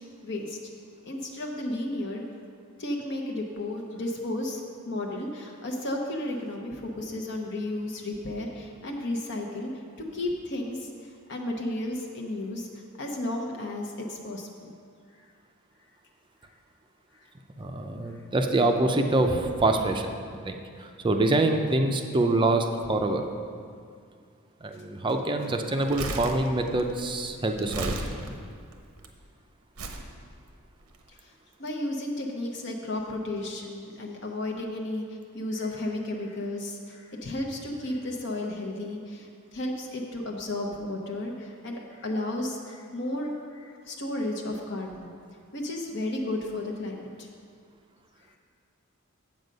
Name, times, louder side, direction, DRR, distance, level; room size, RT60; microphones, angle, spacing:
voice 1, 0.2-0.6 1.1-2.2 2.8-4.6 4.9-9.7 10.1-12.7 13.0-14.5 31.6-35.0 35.3-45.1 45.5-47.3, left 1 dB, 55° left, 0 dB, 0.8 m, -33 dB
voice 2, 17.6-20.2 20.4-20.5 21.0-23.2 24.6-28.0, right 2 dB, 20° right, 4 dB, 0.5 m, -25 dB
Crumpling crinkling, 25.7-29.1 29.8-30.1 30.8-31.0, right 2 dB, 90° right, 0.9 m, -35 dB
7.9 x 7.5 x 5.3 m, 2.2 s
head